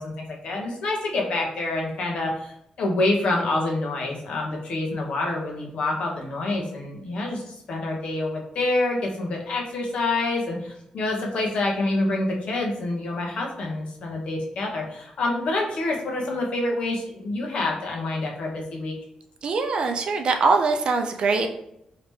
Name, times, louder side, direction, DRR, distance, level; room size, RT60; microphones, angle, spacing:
voice 1, 0.0-2.3 2.8-7.4 7.7-18.9, left 2 dB, 60° left, -1 dB, 0.8 m, -27 dB
voice 2, 19.4-21.5, right 4 dB, 50° right, 5 dB, 0.4 m, -22 dB
3.3 x 2.8 x 3.1 m, 0.77 s
wide cardioid pair, 175°, 2 cm